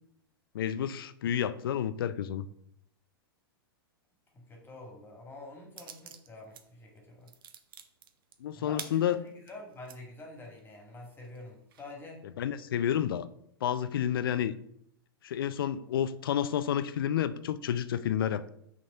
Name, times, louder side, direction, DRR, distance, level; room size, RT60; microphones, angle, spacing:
voice 1, 0.5-2.5 8.4-9.2 12.4-13.3 13.6-14.5 15.2-18.5, left 9 dB, 65° left, 14 dB, 0.5 m, -30 dB
voice 2, 4.3-7.3 8.5-12.3, left 2 dB, 15° left, 0 dB, 2.0 m, -47 dB
sound 1, 5.8-6.6 7.0-10.0 10.5-10.6 11.0-11.9, right 8 dB, 65° right, 0.8 m, -47 dB
6.0 x 4.2 x 5.5 m, 0.74 s
figure-of-eight pair, 100°, 13 cm